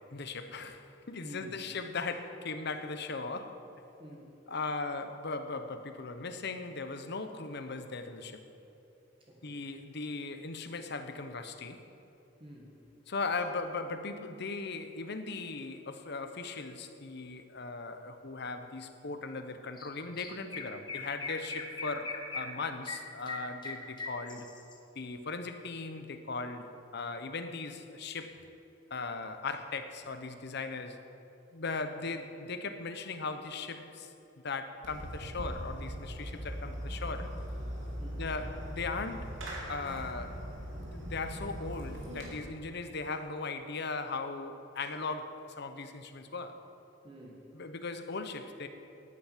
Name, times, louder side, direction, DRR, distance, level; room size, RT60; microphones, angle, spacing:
voice 1, 0.0-3.6 4.5-8.4 9.4-11.8 13.1-24.5 24.9-28.4 28.9-31.0 31.5-34.1 34.4-37.3 38.0-39.3 39.7-40.4 40.8-46.6 47.5-48.7, left 3 dB, 60° left, 8 dB, 1.0 m, -38 dB
voice 2, 1.2-1.6 4.0-4.4 9.2-9.6 12.4-12.8 38.0-38.2 47.0-47.5, equal, 30° right, -2 dB, 1.8 m, -50 dB
Chirp tweet, 19.8-19.9 20.2-24.7, left 3 dB, 25° left, 1.4 m, -40 dB
Fireworks, 34.8-42.3, equal, 90° right, 3.6 m, -40 dB
12.0 x 9.5 x 9.2 m, 2.9 s
head